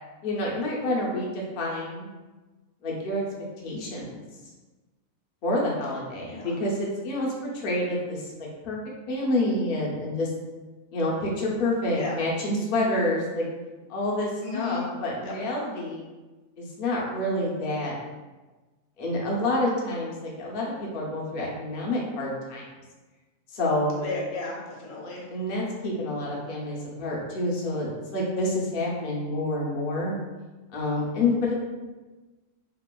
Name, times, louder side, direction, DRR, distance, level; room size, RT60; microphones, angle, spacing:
voice 1, 0.2-2.1 2.8-3.2 3.6-4.2 5.4-8.8 9.1-10.3 10.9-13.4 13.9-16.0 16.6-17.9 19.0-22.7 23.5-24.0 25.3-30.1 30.7-31.5, left 1 dB, 55° left, -3 dB, 0.6 m, -28 dB
voice 2, 14.4-14.8 15.2-15.3 24.0-25.2, left 3 dB, 75° left, -3 dB, 1.0 m, -33 dB
2.8 x 2.2 x 2.2 m, 1.2 s
omnidirectional pair, 1.4 m